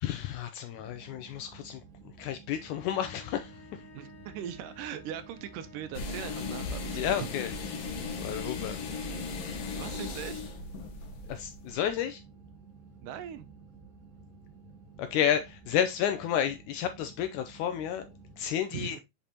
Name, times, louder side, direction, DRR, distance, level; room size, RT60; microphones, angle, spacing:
voice 1, 0.0-1.8 2.2-3.8 6.9-7.5 8.2-8.9 11.3-12.2 15.0-19.0, left 9 dB, 80° left, 1.8 m, -31 dB
sound 1, 0.7-18.4, right 4 dB, 65° right, 0.8 m, -53 dB
sound 2, 2.7-8.1, left 3 dB, 25° left, 2.0 m, -54 dB
voice 2, 3.9-7.3 9.8-10.4 13.0-13.5 18.7-19.0, right 10 dB, 80° right, 2.1 m, -40 dB
sound 3, 5.9-11.9, left 4 dB, 65° left, 1.6 m, -37 dB
6.7 x 5.2 x 2.8 m
omnidirectional pair, 4.0 m